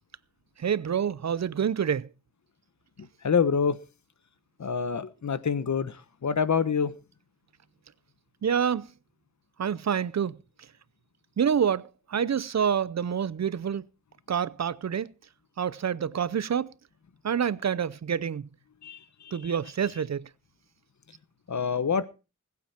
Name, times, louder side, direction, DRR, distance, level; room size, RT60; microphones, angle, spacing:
voice 1, 0.6-2.1 8.4-8.9 9.6-10.4 11.4-13.8 14.3-15.1 15.6-16.7 17.2-18.5 19.3-20.3, right 8 dB, 60° right, 0.6 m, -27 dB
voice 2, 3.2-3.8 4.6-5.9 6.2-6.9 18.8-19.0 21.5-22.0, left 6 dB, 65° left, 1.2 m, -26 dB
20.5 x 8.6 x 4.4 m
wide cardioid pair, 100°, 30 cm